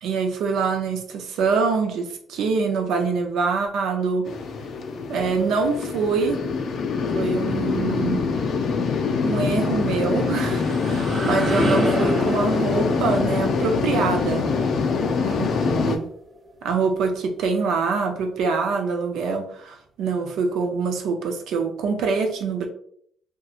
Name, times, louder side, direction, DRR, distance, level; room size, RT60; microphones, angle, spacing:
voice 1, 0.0-4.3 5.1-6.4 7.1-8.2 9.2-14.5 15.3-16.1 16.6-22.7, right 5 dB, 80° right, 4 dB, 0.5 m, -25 dB
sound 1, 4.3-16.0, left 5 dB, 65° left, 0.3 m, -24 dB
Guitar, 8.8-14.0, left 6 dB, 10° right, 1.0 m, -37 dB
sound 2, 10.3-16.1, equal, 35° right, 0.7 m, -29 dB
2.8 x 2.3 x 2.3 m, 0.63 s
cardioid pair, 90°, 0 cm